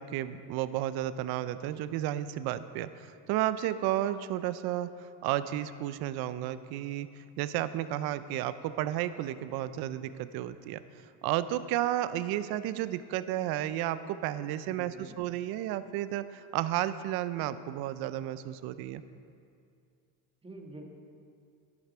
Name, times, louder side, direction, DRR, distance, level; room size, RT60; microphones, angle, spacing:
voice 1, 0.0-10.8 11.2-19.0, right 13 dB, 55° right, 13 dB, 0.6 m, -32 dB
voice 2, 14.7-15.2 20.4-20.9, right 1 dB, 10° right, 1 dB, 1.5 m, -46 dB
11.0 x 10.5 x 4.4 m, 2.4 s
supercardioid pair, 110°, 45 cm